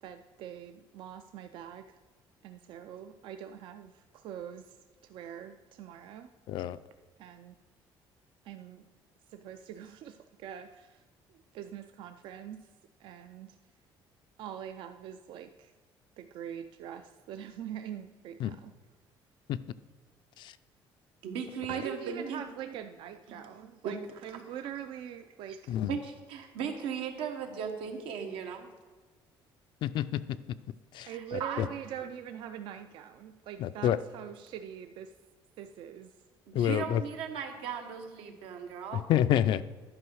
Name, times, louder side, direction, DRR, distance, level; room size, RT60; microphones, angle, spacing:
voice 1, 0.0-2.0 2.4-4.8 5.0-6.3 7.2-7.6 8.4-8.8 9.3-11.0 11.3-12.7 13.0-13.6 14.4-15.7 16.2-18.7 21.7-25.6 31.1-35.1 35.6-36.1, right 9 dB, 70° right, 8 dB, 0.4 m, -43 dB
voice 2, 6.5-6.8 18.4-18.5 19.5-19.6 20.4-20.6 25.7-25.9 29.8-30.4 30.9-31.7 33.6-34.0 36.5-37.0 38.9-39.6, left 11 dB, 60° left, 14 dB, 0.4 m, -28 dB
voice 3, 21.2-22.4 23.3-23.4 23.8-23.9 25.9-28.7 31.1-31.6 36.5-39.1, right 7 dB, 85° right, 5 dB, 1.2 m, -37 dB
11.0 x 4.8 x 6.3 m, 1.4 s
cardioid pair, 150°, 9 cm